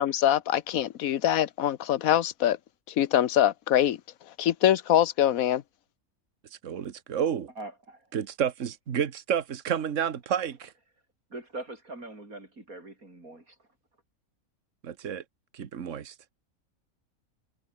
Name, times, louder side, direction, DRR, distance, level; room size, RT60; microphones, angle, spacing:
voice 1, 0.0-2.6 2.9-4.0 4.4-5.6, left 11 dB, 80° left, 1.3 m, -24 dB
voice 2, 6.6-7.5 8.1-10.7 14.8-15.2 15.5-16.1, right 8 dB, 65° right, 1.6 m, -30 dB
voice 3, 7.6-8.1 11.3-13.6, right 2 dB, 90° right, 6.7 m, -42 dB
omnidirectional pair, 1.5 m